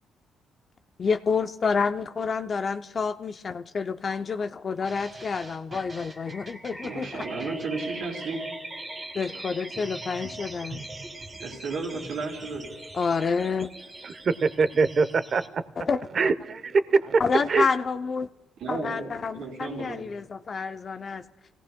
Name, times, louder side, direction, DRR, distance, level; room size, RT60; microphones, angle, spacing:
voice 1, 1.0-7.2 9.1-10.8 12.9-13.7 15.8-16.0 17.2-18.3 18.7-21.2, left 5 dB, 45° left, 9 dB, 0.5 m, -28 dB
sound 1, 4.8-15.5, right 2 dB, 30° right, 2.4 m, -41 dB
voice 2, 6.8-8.4 11.4-12.7 18.6-20.1, right 3 dB, 80° right, -2 dB, 3.0 m, -33 dB
voice 3, 14.0-15.6 16.2-17.2 17.5-17.7, right 4 dB, 50° right, 13 dB, 0.7 m, -23 dB
29.5 x 17.5 x 2.2 m, 1.1 s
cardioid pair, 90°, 0 cm